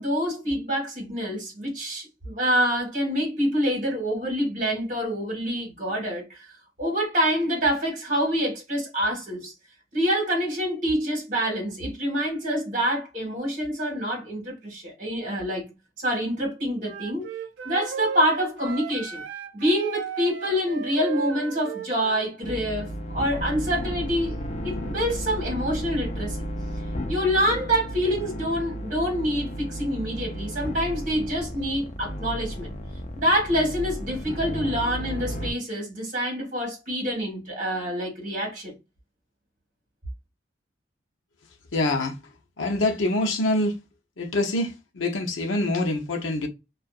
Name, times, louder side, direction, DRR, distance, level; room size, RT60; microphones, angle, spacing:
voice 1, 0.0-6.5 6.8-9.5 9.9-15.7 16.0-17.3 17.6-19.2 19.5-24.4 24.6-26.4 27.1-32.7 33.2-38.7, equal, 40° right, 1.3 m, -26 dB
Wind instrument woodwind instrument, 16.8-22.3, right 6 dB, 65° right, 0.3 m, -35 dB
sound 1, 22.4-35.5, equal, 35° left, 0.4 m, -33 dB
voice 2, 41.7-42.2 42.6-43.8 44.2-46.5, left 2 dB, 85° left, 0.7 m, -25 dB
2.6 x 2.3 x 2.3 m
head